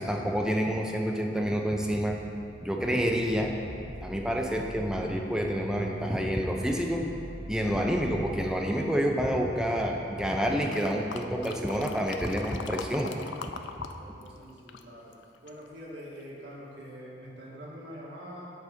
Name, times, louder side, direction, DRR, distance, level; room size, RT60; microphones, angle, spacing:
voice 1, 0.0-2.2 2.6-3.5 3.9-7.1 7.5-13.1 13.7-13.8, equal, 5° right, 0 dB, 0.5 m, -28 dB
sound 1, 1.4-10.5, right 1 dB, 45° right, 1.6 m, -44 dB
sound 2, 10.7-13.9 14.2-15.7 16.2-16.3, left 5 dB, 90° left, 0.4 m, -40 dB
voice 2, 13.9-15.1 15.4-18.5, equal, 70° right, -6 dB, 1.6 m, -44 dB
7.5 x 4.0 x 5.0 m, 2.7 s
head